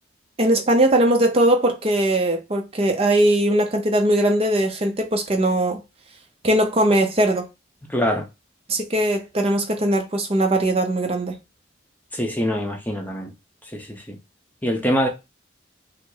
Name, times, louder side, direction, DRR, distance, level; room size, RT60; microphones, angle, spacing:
voice 1, 0.4-5.8 6.4-7.4 8.7-11.4, right 1 dB, 30° right, 0.6 m, -20 dB
voice 2, 7.9-8.3 12.1-13.3 13.7-14.2 14.6-15.1, equal, 10° left, 0.7 m, -24 dB
5.5 x 2.1 x 3.8 m
head